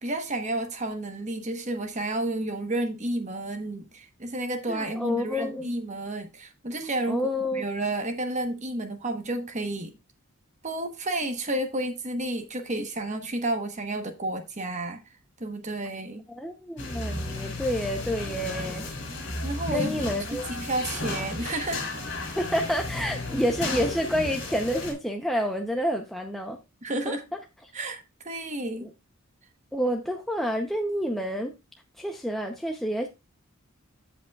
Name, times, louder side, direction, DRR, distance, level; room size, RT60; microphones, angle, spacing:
voice 1, 0.0-10.0 10.6-15.0 15.4-16.2 19.4-21.8 26.8-27.2 27.7-28.9, right 1 dB, 35° right, 1.1 m, -31 dB
voice 2, 4.7-5.7 6.8-7.6 16.3-18.8 19.7-20.4 22.3-26.6 27.1-27.4 28.8-28.9 29.7-31.5 32.0-33.1, equal, ahead, 0.6 m, -29 dB
sound 1, 16.8-24.9, left 2 dB, 55° left, 3.2 m, -33 dB
15.0 x 5.1 x 2.3 m
head